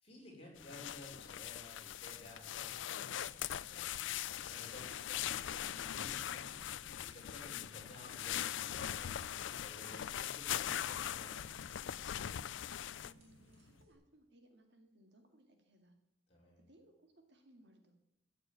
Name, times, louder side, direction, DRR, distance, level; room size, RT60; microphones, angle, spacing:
voice 1, 0.0-3.9 4.4-6.6 7.0-11.6 16.3-16.6, left 1 dB, 30° left, -2 dB, 4.9 m, -55 dB
sound 1, 0.6-13.1, left 11 dB, 70° left, 0.4 m, -41 dB
sound 2, 2.1-13.9, right 1 dB, 30° right, 4.6 m, -68 dB
voice 2, 4.8-5.4 13.0-16.0 16.6-18.0, right 1 dB, 60° right, 4 dB, 2.2 m, -65 dB
sound 3, 5.4-13.9, left 2 dB, 85° left, 0.9 m, -64 dB
14.5 x 6.8 x 9.0 m, 0.85 s
head